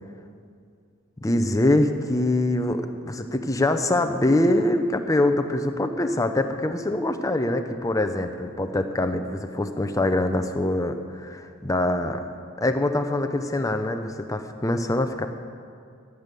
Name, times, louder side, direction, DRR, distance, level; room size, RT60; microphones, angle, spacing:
voice 1, 1.2-12.2 12.6-15.3, left 1 dB, 15° left, 7 dB, 0.6 m, -24 dB
14.5 x 8.3 x 6.9 m, 2.2 s
head